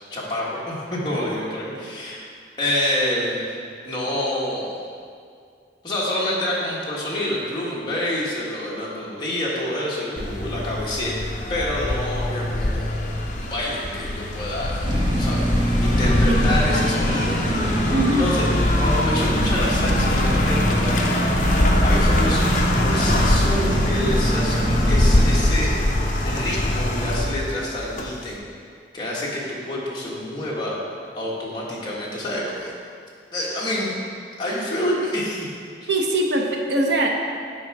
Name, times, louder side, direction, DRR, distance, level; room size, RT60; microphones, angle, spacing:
voice 1, 0.1-2.3 2.6-3.5 3.8-4.8 5.8-14.9 15.1-18.5 18.8-21.3 21.6-25.8 26.2-28.4 28.9-30.8 31.2-32.7 33.3-33.9 34.4-35.5 35.8-35.9, left 1 dB, 25° left, -6 dB, 1.5 m, -27 dB
sound 1, 10.2-28.3, left 1 dB, 40° left, 0.7 m, -22 dB
sound 2, 14.8-25.4, right 1 dB, 25° right, 0.6 m, -25 dB
voice 2, 16.2-16.8 17.9-18.3 35.9-37.1, right 1 dB, 70° right, 0 dB, 0.8 m, -23 dB
7.9 x 5.0 x 4.8 m, 2.3 s
head